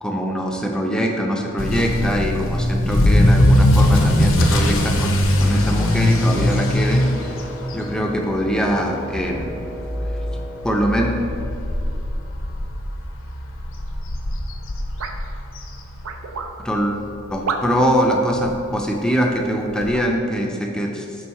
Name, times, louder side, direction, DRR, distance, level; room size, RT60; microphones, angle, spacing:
voice 1, 0.0-7.1 7.7-9.5 10.6-11.3 16.6-17.0 17.3-21.1, equal, 5° left, 1 dB, 0.5 m, -22 dB
Motor vehicle (road) / Accelerating revving vroom, 1.6-16.4 16.7-17.1 17.6-17.7 18.0-18.1 18.4-18.5 19.8-19.9, left 1 dB, 65° left, 0.7 m, -20 dB
Wind instrument woodwind instrument, 5.7-11.4, equal, 45° right, 1.2 m, -37 dB
sound 1, 15.0-15.2 16.0-16.5 17.5-17.9 19.1-19.2 19.9-20.1, right 4 dB, 80° right, 0.5 m, -28 dB
6.3 x 3.7 x 4.3 m, 2.8 s
head